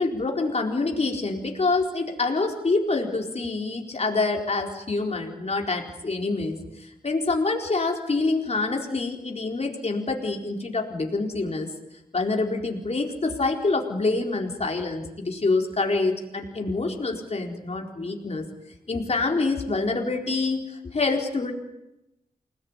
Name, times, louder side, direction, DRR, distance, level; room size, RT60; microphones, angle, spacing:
voice 1, 0.0-11.7 12.1-18.5 18.9-21.5, left 3 dB, 45° left, 2 dB, 4.3 m, -26 dB
29.0 x 20.0 x 9.8 m, 0.90 s
wide cardioid pair, 130°, 15 cm